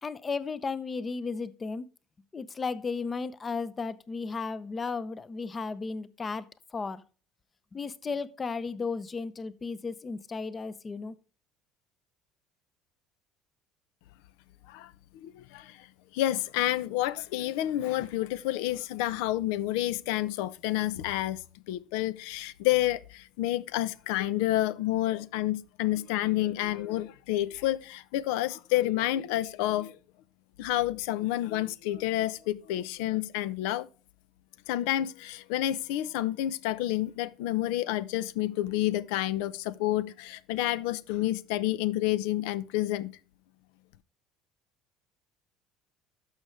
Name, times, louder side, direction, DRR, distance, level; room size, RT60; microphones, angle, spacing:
voice 1, 0.0-1.9 2.3-6.5 6.7-7.0 7.7-11.1, left 4 dB, 20° left, 0.6 m, -34 dB
voice 2, 15.2-15.9 16.1-21.4 21.7-30.0 30.6-33.9 34.7-43.1, left 14 dB, 90° left, 0.5 m, -29 dB
12.0 x 6.3 x 3.2 m
cardioid pair, 135°, 0 cm